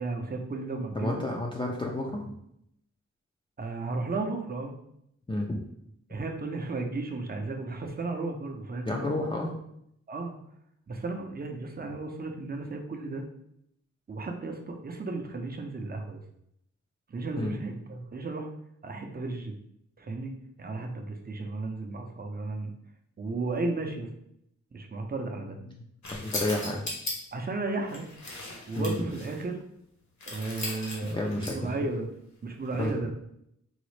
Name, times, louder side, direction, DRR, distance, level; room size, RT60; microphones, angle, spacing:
voice 1, 0.0-1.2 3.6-4.7 6.1-9.5 10.1-10.4 10.9-13.3 14.1-16.2 17.1-18.5 18.8-19.6 20.0-22.7 23.2-24.1 24.7-25.6 27.3-28.1 28.7-29.6 30.2-32.1 32.4-33.1, right 3 dB, 30° right, 3 dB, 0.5 m, -34 dB
voice 2, 1.0-2.2 5.3-5.6 8.9-9.5 17.4-17.5 26.1-26.9 28.8-28.9 31.1-31.7 32.8-32.9, left 1 dB, 15° left, -2 dB, 0.4 m, -30 dB
sound 1, 26.0-27.1 27.8-29.4 30.2-31.7 32.6-32.9, left 2 dB, 70° left, 1.1 m, -38 dB
3.9 x 2.0 x 3.1 m, 0.76 s
cardioid pair, 70°, 30 cm